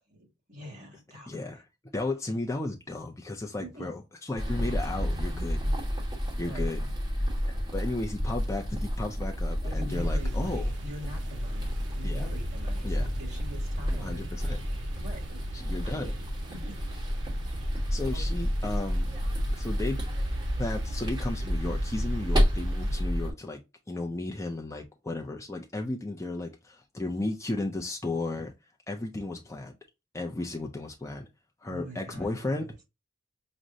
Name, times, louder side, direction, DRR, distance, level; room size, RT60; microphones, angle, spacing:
voice 1, 0.2-1.5 3.6-3.9 6.4-6.7 9.6-14.2 15.0-15.5 15.8-16.1 16.5-16.7 18.1-18.2 31.7-32.7, equal, 40° right, 1.9 m, -44 dB
voice 2, 1.3-1.6 1.9-5.6 6.4-6.9 7.2-7.3 7.7-10.7 12.0-12.3 12.8-13.1 13.9-14.6 15.5-16.1 17.9-19.1 19.5-20.0 20.6-23.6 23.9-28.5 28.9-29.8 30.1-31.3 31.6-32.7, left 2 dB, 15° left, 0.4 m, -34 dB
sound 1, 4.4-23.3, equal, 20° right, 1.2 m, -30 dB
sound 2, 9.8-23.0, right 1 dB, 70° right, 0.6 m, -41 dB
6.1 x 2.1 x 2.6 m
head